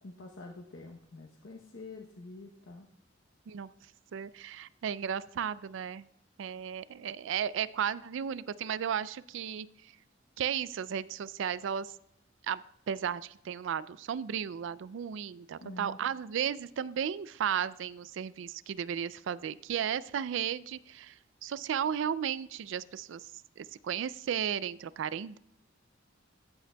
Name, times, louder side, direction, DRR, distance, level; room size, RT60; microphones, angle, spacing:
voice 1, 0.0-2.9 15.6-16.0, left 2 dB, 75° left, 1 dB, 0.9 m, -47 dB
voice 2, 4.1-6.1 6.4-9.9 10.4-11.9 12.5-23.3 23.6-25.4, right 8 dB, 70° right, 18 dB, 0.3 m, -34 dB
14.5 x 8.4 x 2.3 m, 0.74 s
head